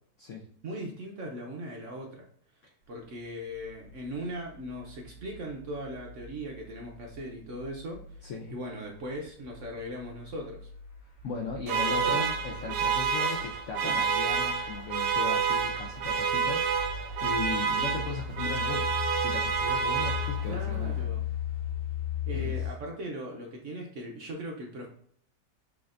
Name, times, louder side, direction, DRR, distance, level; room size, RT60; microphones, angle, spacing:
voice 1, 0.6-2.3 2.9-8.3 8.5-10.7 11.8-12.3 13.8-14.0 20.5-21.2 22.3-24.9, equal, 60° right, 0 dB, 0.9 m, -39 dB
sound 1, 3.5-22.7, left 6 dB, 35° left, 1.7 m, -38 dB
voice 2, 8.2-8.6 11.2-21.1 22.3-22.7, left 4 dB, 70° left, 1 dB, 0.7 m, -37 dB
sound 2, 11.7-20.7, right 6 dB, 75° right, 1.3 m, -29 dB
6.1 x 3.4 x 2.5 m, 0.64 s
omnidirectional pair, 1.9 m